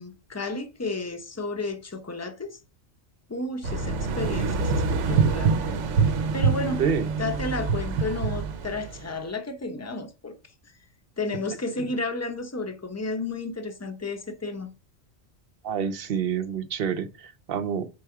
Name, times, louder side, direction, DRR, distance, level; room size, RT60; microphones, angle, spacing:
voice 1, 0.0-2.6 3.3-5.5 6.3-6.8 7.2-10.4 11.2-14.7, left 2 dB, 15° left, 0.6 m, -32 dB
sound 1, 3.6-9.1, right 5 dB, 85° right, 1.0 m, -25 dB
voice 2, 15.6-17.9, right 7 dB, 60° right, 0.8 m, -27 dB
4.8 x 4.6 x 4.6 m
omnidirectional pair, 1.2 m